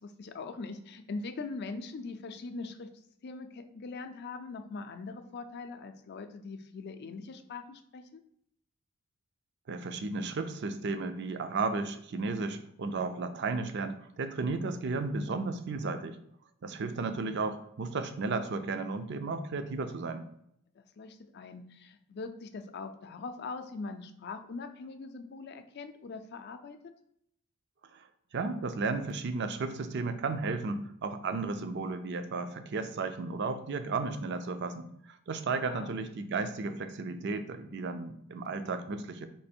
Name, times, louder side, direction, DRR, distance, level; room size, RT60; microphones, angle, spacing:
voice 1, 0.0-2.9 3.2-8.2 20.8-26.8 35.6-35.9, left 3 dB, 50° left, 8 dB, 0.4 m, -42 dB
voice 2, 9.7-16.2 16.6-20.3 27.9-28.0 28.3-39.3, right 3 dB, 50° right, 9 dB, 0.4 m, -34 dB
3.3 x 3.0 x 4.3 m, 0.73 s
head